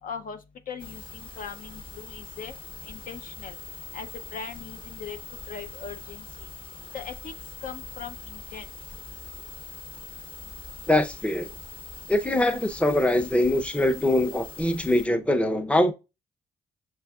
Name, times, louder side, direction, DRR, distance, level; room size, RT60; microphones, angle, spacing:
voice 1, 0.0-2.6 2.8-8.8, left 6 dB, 60° left, 0.5 m, -40 dB
sound 1, 0.8-15.1, left 4 dB, 35° left, 1.0 m, -42 dB
voice 2, 10.9-11.5 12.1-15.9, left 1 dB, 5° left, 0.5 m, -23 dB
6.3 x 2.4 x 2.3 m
supercardioid pair, 60°, 16 cm